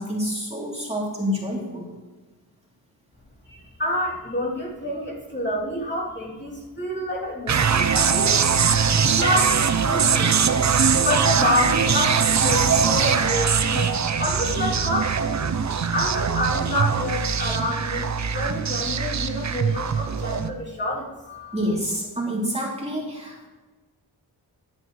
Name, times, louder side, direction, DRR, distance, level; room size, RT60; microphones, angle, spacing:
voice 1, 0.0-1.9 21.5-23.5, equal, 15° right, -3 dB, 3.3 m, -28 dB
voice 2, 3.5-8.4 9.1-10.4 11.0-15.2 15.9-21.6, left 1 dB, 25° left, -5 dB, 3.1 m, -28 dB
sound 1, 7.5-20.5, right 6 dB, 45° right, 0.7 m, -22 dB
13.5 x 9.7 x 3.2 m, 1.3 s
cardioid pair, 75°, 40 cm